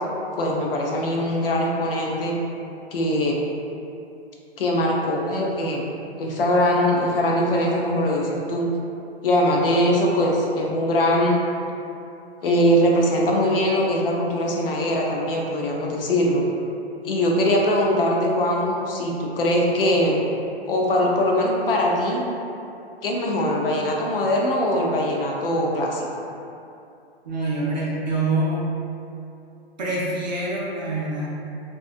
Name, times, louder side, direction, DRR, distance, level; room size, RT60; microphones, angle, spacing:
voice 1, 0.4-2.4 2.9-3.4 4.6-5.8 6.2-8.7 9.2-11.4 12.4-16.4 17.0-20.2 20.7-22.2 23.0-26.2, equal, 60° left, -1 dB, 0.5 m, -21 dB
voice 2, 27.2-28.6 29.8-31.3, right 2 dB, 45° right, -5 dB, 0.4 m, -25 dB
2.6 x 2.3 x 2.4 m, 2.7 s
hypercardioid pair, 175°, 32 cm